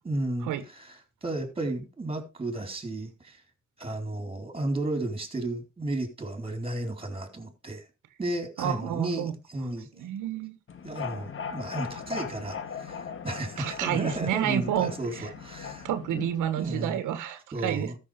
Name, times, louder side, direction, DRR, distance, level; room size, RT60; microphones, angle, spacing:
voice 1, 0.0-3.4 3.8-7.8 8.2-9.9 10.8-15.9 16.6-17.0 17.5-18.0, right 1 dB, 20° right, 4.0 m, -33 dB
voice 2, 8.6-9.3 10.0-10.6 13.6-15.3 15.8-17.9, right 10 dB, 85° right, 1.4 m, -30 dB
sound 1, 10.7-16.8, left 6 dB, 45° left, 1.6 m, -39 dB
13.5 x 6.5 x 5.1 m
cardioid pair, 90°, 30 cm